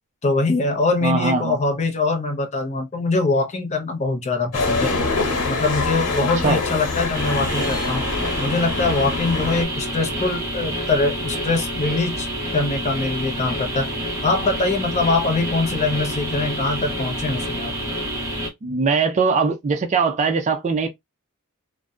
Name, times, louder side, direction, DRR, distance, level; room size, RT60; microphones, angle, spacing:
voice 1, 0.2-4.9 5.5-8.0 8.4-13.9 14.2-17.7, left 3 dB, 30° left, 0.5 m, -23 dB
voice 2, 1.0-1.6 6.2-6.6 18.6-20.9, right 4 dB, 30° right, 0.3 m, -21 dB
sound 1, 4.5-9.6, left 3 dB, 90° left, 1.1 m, -24 dB
sound 2, 7.1-18.5, equal, 15° right, 0.7 m, -28 dB
2.6 x 2.1 x 2.2 m
head